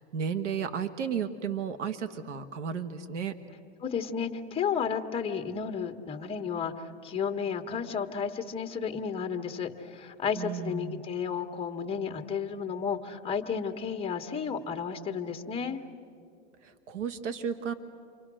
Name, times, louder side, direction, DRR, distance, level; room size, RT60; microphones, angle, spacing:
voice 1, 0.0-3.3 10.4-11.0 16.6-17.7, right 7 dB, 85° right, 9 dB, 1.5 m, -33 dB
voice 2, 3.8-15.8, left 6 dB, 15° left, 6 dB, 1.4 m, -32 dB
29.0 x 25.0 x 6.3 m, 2.4 s
hypercardioid pair, 125°, 35 cm